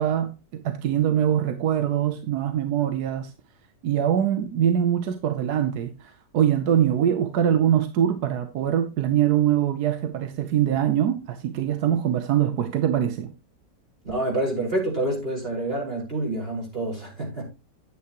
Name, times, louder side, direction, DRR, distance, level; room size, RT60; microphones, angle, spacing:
voice 1, 0.0-3.3 3.8-13.3, right 10 dB, 70° right, 1.3 m, -23 dB
voice 2, 14.0-17.5, right 1 dB, 30° right, 5.5 m, -27 dB
10.5 x 9.3 x 3.0 m
omnidirectional pair, 1.9 m